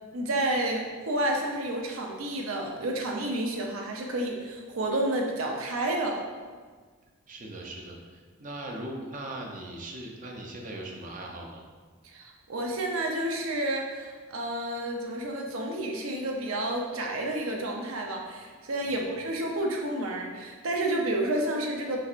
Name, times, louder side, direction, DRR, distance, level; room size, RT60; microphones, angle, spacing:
voice 1, 0.1-6.2 12.0-22.0, right 1 dB, 85° right, 0 dB, 0.6 m, -30 dB
voice 2, 7.3-11.6 18.8-19.1, right 1 dB, 40° right, 0 dB, 0.6 m, -40 dB
5.7 x 3.3 x 2.5 m, 1.5 s
head